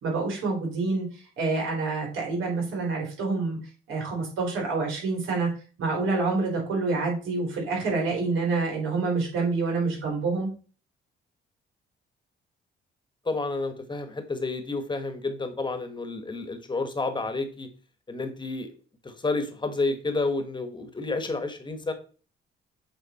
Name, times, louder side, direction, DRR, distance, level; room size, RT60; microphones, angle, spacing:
voice 1, 0.0-3.6 3.9-5.5 5.8-10.5, right 3 dB, 85° right, -1 dB, 3.3 m, -27 dB
voice 2, 13.2-17.7 18.1-18.7 19.0-21.9, left 3 dB, 25° left, 8 dB, 1.3 m, -30 dB
7.8 x 3.8 x 4.1 m, 0.38 s
cardioid pair, 90°, 20 cm